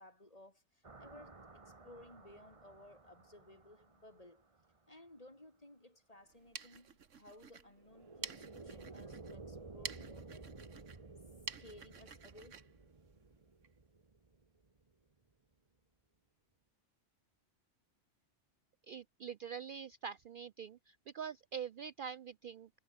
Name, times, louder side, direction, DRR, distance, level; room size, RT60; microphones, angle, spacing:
voice 1, 0.0-4.4 4.9-10.6 11.6-12.7, left 1 dB, 30° left, 5.2 m, -58 dB
sound 1, 0.8-4.8 7.8-14.9, right 3 dB, 25° right, 1.4 m, -54 dB
sound 2, 6.2-13.7, right 6 dB, 80° right, 1.8 m, -51 dB
voice 2, 18.9-22.7, right 7 dB, 60° right, 0.6 m, -45 dB
omnidirectional pair, 1.3 m